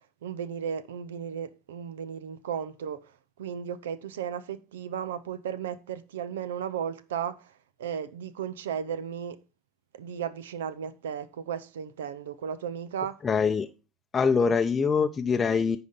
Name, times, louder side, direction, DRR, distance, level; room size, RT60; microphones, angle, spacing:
voice 1, 0.0-9.4 9.9-13.2 14.4-14.5, right 8 dB, 90° right, 0.5 m, -35 dB
voice 2, 13.2-13.7 14.1-15.8, left 5 dB, 30° left, 0.5 m, -24 dB
9.7 x 3.9 x 5.3 m
hypercardioid pair, 85°, 0 cm